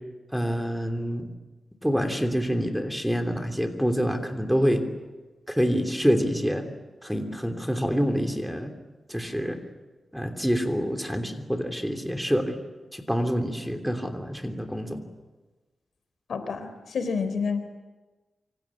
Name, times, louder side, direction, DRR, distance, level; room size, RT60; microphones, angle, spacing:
voice 1, 0.3-1.3 1.8-4.8 5.5-6.7 7.0-8.7 9.1-9.6 10.1-12.6 12.9-15.0, equal, ahead, 5 dB, 3.1 m, -26 dB
voice 2, 16.3-17.6, left 5 dB, 80° left, 9 dB, 3.8 m, -29 dB
27.5 x 24.5 x 8.6 m, 1.2 s
wide cardioid pair, 100°, 0 cm